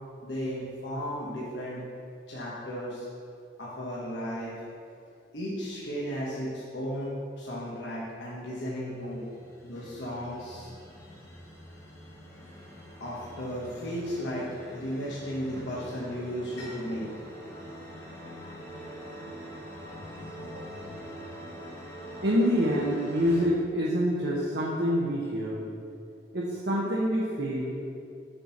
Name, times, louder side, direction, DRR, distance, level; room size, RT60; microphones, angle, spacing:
voice 1, 0.2-1.8 2.3-3.1 3.6-4.6 5.3-9.2 9.6-10.7 13.0-14.5 14.7-17.2 17.5-17.6, equal, 65° left, -6 dB, 1.2 m, -35 dB
sound 1, 8.9-23.5, equal, 15° left, 1.0 m, -44 dB
voice 2, 22.2-25.6 26.3-27.8, equal, 60° right, -4 dB, 0.9 m, -26 dB
6.8 x 4.4 x 5.8 m, 2.4 s
head